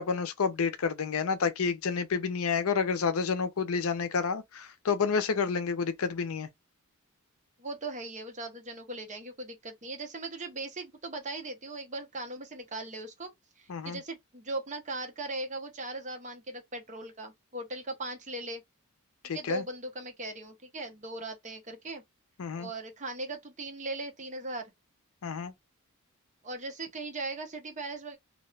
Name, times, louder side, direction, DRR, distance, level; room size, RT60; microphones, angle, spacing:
voice 1, 0.0-6.5 13.7-14.0 19.2-19.6 22.4-22.7 25.2-25.5, left 5 dB, 70° left, 0.5 m, -29 dB
voice 2, 7.6-13.3 13.6-18.6 19.3-22.0 22.5-24.7 26.4-28.2, right 2 dB, 35° right, 0.9 m, -39 dB
2.6 x 2.5 x 3.2 m
head